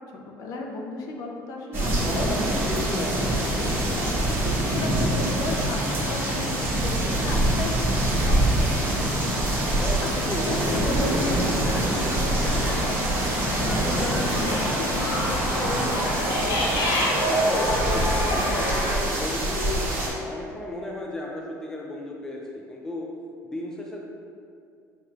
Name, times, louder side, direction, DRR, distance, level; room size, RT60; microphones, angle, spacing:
voice 1, 0.2-2.5 3.5-9.5 10.0-12.2 12.6-16.3, left 2 dB, 60° left, 1 dB, 0.6 m, -35 dB
sound 1, 1.7-20.1, right 1 dB, 35° right, 1.0 m, -25 dB
voice 2, 2.0-3.8 9.8-11.1 16.9-23.1 23.4-24.0, left 2 dB, 10° left, -2 dB, 0.4 m, -35 dB
sound 2, 10.5-18.9, left 1 dB, 80° left, 1.1 m, -28 dB
sound 3, 13.6-19.6, equal, 25° left, 0.8 m, -41 dB
6.4 x 3.0 x 2.4 m, 2.4 s
cardioid pair, 150°, 7 cm